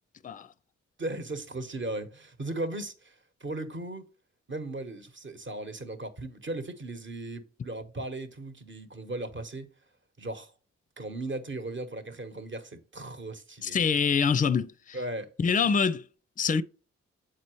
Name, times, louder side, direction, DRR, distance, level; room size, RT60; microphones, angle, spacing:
voice 1, 1.0-4.0 4.5-9.7 10.2-10.5 11.0-13.8 14.9-15.3, right 2 dB, 40° right, 1.1 m, -37 dB
voice 2, 13.6-15.0 15.4-16.0 16.4-16.6, left 6 dB, 25° left, 0.4 m, -25 dB
7.7 x 4.2 x 3.1 m
supercardioid pair, 45°, 30 cm